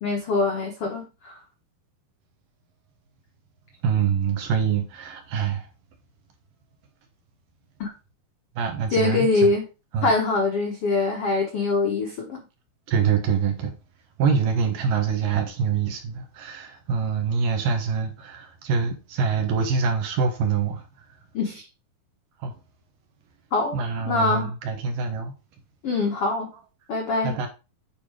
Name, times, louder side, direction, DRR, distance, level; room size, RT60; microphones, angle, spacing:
voice 1, 0.0-1.4 7.8-7.9 8.9-9.7 10.0-12.4 21.3-21.6 23.5-23.8 24.0-24.5 25.8-26.5 26.9-27.4, left 3 dB, 70° left, 1.4 m, -23 dB
voice 2, 3.8-5.7 8.6-9.5 9.9-10.1 12.9-13.7 14.2-20.8 22.4-22.5 23.7-25.3 27.2-27.5, right 6 dB, 65° right, 2.4 m, -25 dB
8.9 x 4.7 x 4.9 m
omnidirectional pair, 4.7 m